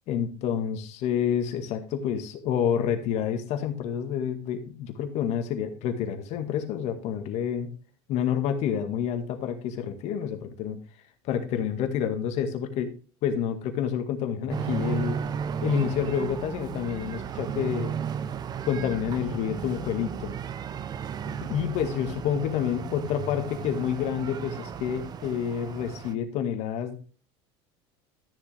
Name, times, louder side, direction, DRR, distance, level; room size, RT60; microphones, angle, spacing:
voice 1, 0.1-7.7 8.1-10.8 11.2-12.9 13.2-15.2 15.6-17.9 18.6-20.3 21.3-27.0, left 8 dB, 55° left, 7 dB, 2.0 m, -28 dB
sound 1, 14.5-26.1, right 7 dB, 30° right, 0.8 m, -34 dB
13.0 x 7.3 x 3.5 m, 0.36 s
supercardioid pair, 130°, 14 cm